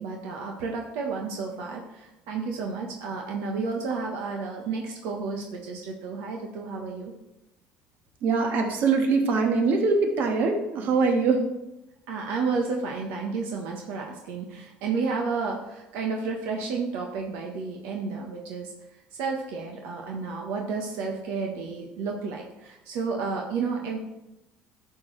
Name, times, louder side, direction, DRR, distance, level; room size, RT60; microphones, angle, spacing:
voice 1, 0.0-7.1 12.1-18.7 19.2-24.0, right 4 dB, 75° right, 0 dB, 1.3 m, -31 dB
voice 2, 8.2-11.4, right 4 dB, 55° right, 3 dB, 1.7 m, -23 dB
11.5 x 7.1 x 3.3 m, 0.92 s
cardioid pair, 135°, 4 cm